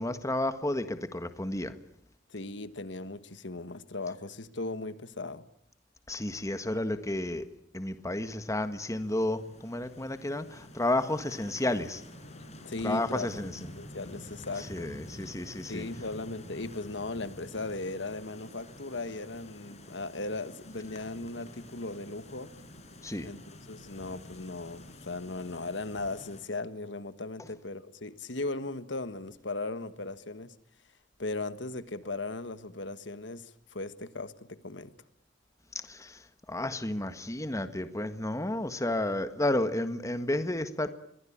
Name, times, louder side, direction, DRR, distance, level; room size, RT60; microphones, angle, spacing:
voice 1, 0.0-1.7 6.1-7.5 7.7-12.0 12.8-13.5 14.7-15.8 23.0-23.3 35.7-36.2 36.5-40.9, left 1 dB, 15° left, 1.6 m, -31 dB
voice 2, 2.3-5.5 12.6-13.3 13.8-14.9 15.7-22.5 23.2-23.4 23.7-30.5 31.2-34.9, left 2 dB, 70° left, 1.6 m, -37 dB
sound 1, 8.5-26.4, left 1 dB, 35° left, 5.3 m, -49 dB
26.5 x 23.0 x 8.8 m
head